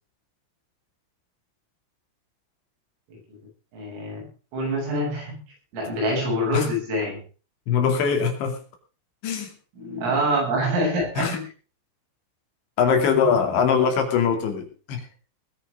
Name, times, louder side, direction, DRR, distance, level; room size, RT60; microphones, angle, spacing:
voice 1, 3.7-4.3 4.5-5.4 5.7-7.2 9.8-11.4, equal, 80° right, -1 dB, 10.5 m, -26 dB
voice 2, 7.7-8.6 9.2-9.5 11.2-11.4 12.8-15.1, left 6 dB, 65° left, 4 dB, 4.7 m, -22 dB
21.0 x 8.4 x 5.1 m, 0.38 s
omnidirectional pair, 5.8 m